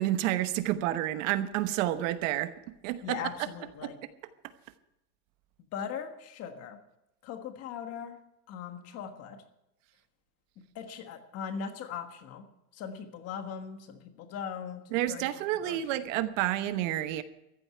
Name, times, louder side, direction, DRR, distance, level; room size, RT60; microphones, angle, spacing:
voice 1, 0.0-3.2 3.8-3.9 14.9-17.2, right 13 dB, 55° right, 11 dB, 1.1 m, -30 dB
voice 2, 3.0-4.0 5.7-6.8 7.2-8.2 8.5-9.4 10.6-12.5 12.7-15.8, left 7 dB, 30° left, 7 dB, 1.5 m, -40 dB
14.5 x 7.9 x 8.9 m, 0.88 s
supercardioid pair, 160°, 47 cm